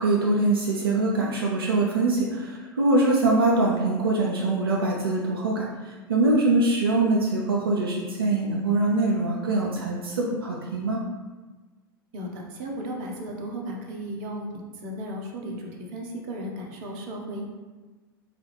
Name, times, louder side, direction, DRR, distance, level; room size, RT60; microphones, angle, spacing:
voice 1, 0.0-11.0, right 2 dB, 80° right, -3 dB, 0.5 m, -23 dB
voice 2, 12.1-17.5, equal, 50° right, 0 dB, 0.7 m, -35 dB
4.0 x 2.4 x 3.1 m, 1.3 s
figure-of-eight pair, 90°, 12 cm